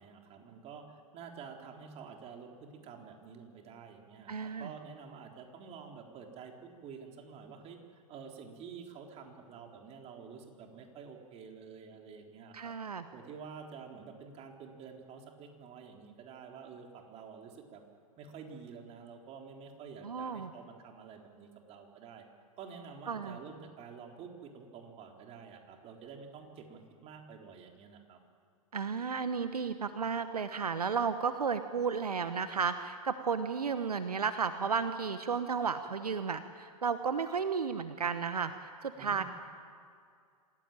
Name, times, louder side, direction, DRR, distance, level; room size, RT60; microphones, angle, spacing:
voice 1, 0.0-12.7 13.1-17.8 18.2-22.2 22.6-28.2 38.9-39.2, right 6 dB, 35° right, 2 dB, 3.9 m, -49 dB
voice 2, 4.3-4.7 12.5-13.0 20.0-20.5 23.1-23.4 28.7-39.2, right 6 dB, 80° right, 10 dB, 1.1 m, -33 dB
26.5 x 17.0 x 9.0 m, 2.2 s
figure-of-eight pair, 105°, 19 cm